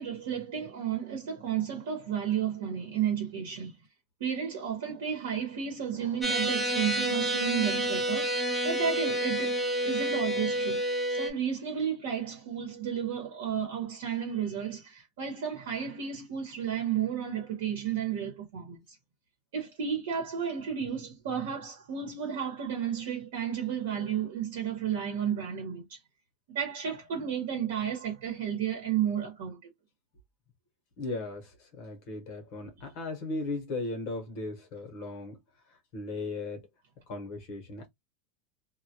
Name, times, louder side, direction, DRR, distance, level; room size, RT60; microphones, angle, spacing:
voice 1, 0.0-3.8 4.2-8.3 8.6-9.6 9.8-10.8 11.1-19.0 19.5-26.0 26.5-29.6, right 8 dB, 65° right, 0.9 m, -32 dB
sound 1, 6.2-11.3, right 1 dB, 5° right, 0.4 m, -29 dB
voice 2, 31.0-35.4 35.9-36.6 37.1-37.9, left 2 dB, 45° left, 0.8 m, -37 dB
2.2 x 2.1 x 2.7 m
supercardioid pair, 175°, 0 cm